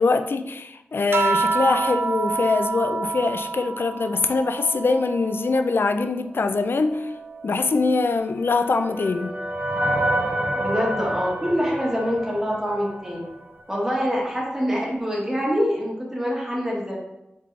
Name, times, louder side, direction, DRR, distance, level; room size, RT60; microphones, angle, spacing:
voice 1, 0.0-7.1 7.4-9.4, left 3 dB, 65° left, 9 dB, 0.3 m, -23 dB
sound 1, 1.1-5.9 6.4-8.1 9.3-9.8, right 4 dB, 75° right, 0.3 m, -29 dB
sound 2, 8.1-13.4, right 1 dB, 45° right, 0.7 m, -28 dB
voice 2, 10.5-13.2 13.7-17.0, equal, 10° right, -4 dB, 1.4 m, -25 dB
3.9 x 3.6 x 3.2 m, 0.89 s
wide cardioid pair, 60°, 4 cm